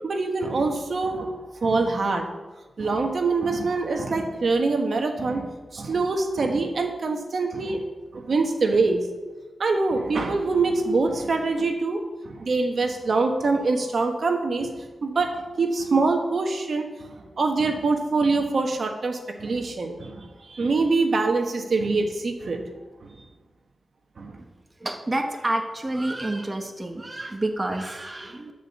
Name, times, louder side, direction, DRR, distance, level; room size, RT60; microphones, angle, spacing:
voice 1, 0.0-2.2 2.8-7.8 8.1-9.0 9.6-14.7 15.0-16.9 17.4-22.7 23.0-23.1 24.2-24.3, right 3 dB, 60° right, 4 dB, 1.4 m, -24 dB
voice 2, 24.8-28.5, right 1 dB, 25° right, 4 dB, 1.2 m, -29 dB
11.5 x 5.2 x 7.0 m, 1.3 s
cardioid pair, 70°, 0 cm